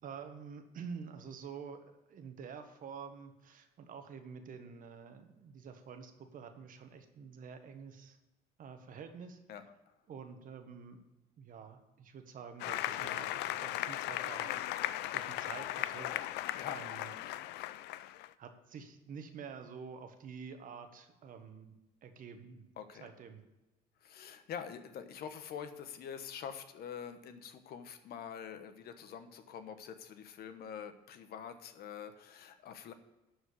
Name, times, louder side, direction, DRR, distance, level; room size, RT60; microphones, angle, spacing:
voice 1, 0.0-8.2 8.6-9.4 10.1-11.0 11.4-14.7 15.1-16.1 16.7-17.1 18.4-21.7 22.0-22.6 23.0-23.4, right 6 dB, 55° right, 7 dB, 1.4 m, -48 dB
Applause, 12.6-18.3, left 14 dB, 85° left, 0.5 m, -37 dB
voice 2, 17.2-18.2 22.8-23.1 24.0-32.9, left 8 dB, 65° left, 9 dB, 1.1 m, -46 dB
11.5 x 4.9 x 8.4 m, 1.0 s
cardioid pair, 110°, 17 cm